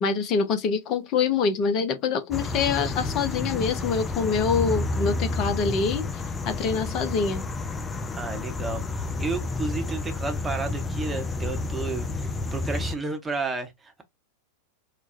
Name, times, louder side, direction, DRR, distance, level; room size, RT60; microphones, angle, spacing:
voice 1, 0.0-6.1 6.4-7.4, left 5 dB, 35° left, 0.8 m, -25 dB
sound 1, 2.3-13.0, left 3 dB, 15° left, 0.4 m, -30 dB
voice 2, 8.1-14.0, right 4 dB, 15° right, 0.9 m, -32 dB
4.8 x 2.2 x 2.6 m
figure-of-eight pair, 90°, 0 cm